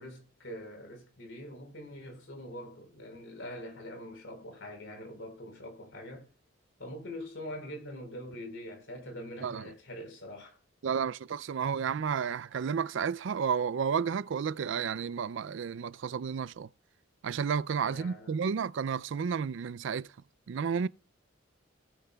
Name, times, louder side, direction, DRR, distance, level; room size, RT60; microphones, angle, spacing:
voice 1, 0.0-6.2 6.8-10.6 17.8-18.4, left 1 dB, 65° left, 4.4 m, -44 dB
voice 2, 9.4-9.7 10.8-16.7 17.2-20.1 20.5-20.9, right 6 dB, 65° right, 0.4 m, -32 dB
18.5 x 9.0 x 2.3 m
head